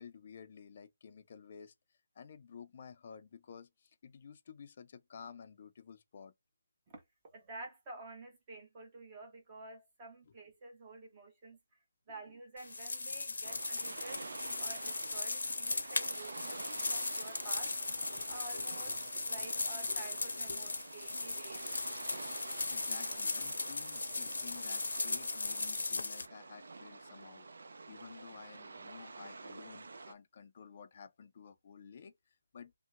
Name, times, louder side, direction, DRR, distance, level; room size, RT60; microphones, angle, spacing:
voice 1, 0.0-1.7 2.2-6.3 13.5-13.6 15.7-15.8 18.2-19.2 19.9-20.0 20.5-20.6 22.7-27.5 27.9-32.1 32.5-32.7, left 6 dB, 40° left, 0.4 m, -53 dB
voice 2, 6.9-11.6 12.1-14.3 14.6-21.7, right 2 dB, 20° right, 1.0 m, -50 dB
sound 1, 12.6-26.3, left 3 dB, 80° left, 0.6 m, -38 dB
sound 2, 13.4-30.1, right 3 dB, 65° right, 0.5 m, -48 dB
2.8 x 2.1 x 2.4 m
hypercardioid pair, 165°, 0 cm